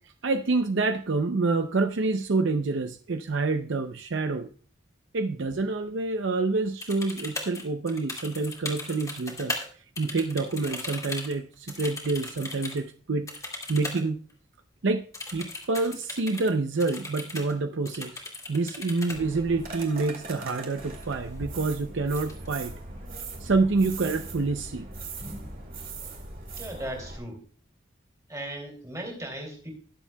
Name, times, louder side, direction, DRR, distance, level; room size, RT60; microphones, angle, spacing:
voice 1, 0.2-4.5 5.1-9.5 10.0-13.3 13.7-14.2 14.8-15.0 15.3-18.2 18.5-22.8 23.4-24.9, right 3 dB, 65° right, 8 dB, 0.6 m, -27 dB
sound 1, 6.8-9.7 10.0-12.8 13.3-14.0 14.3-14.4 15.1-16.5 16.8-17.5 17.9-19.2 20.9-21.1 21.4-21.8 22.2-22.8, left 2 dB, 15° left, 2.1 m, -37 dB
sound 2, 19.1-27.2, right 3 dB, 45° right, 2.3 m, -40 dB
voice 2, 26.6-27.4 28.3-29.7, right 1 dB, 15° right, 1 dB, 3.0 m, -37 dB
21.0 x 7.3 x 2.3 m, 0.41 s
head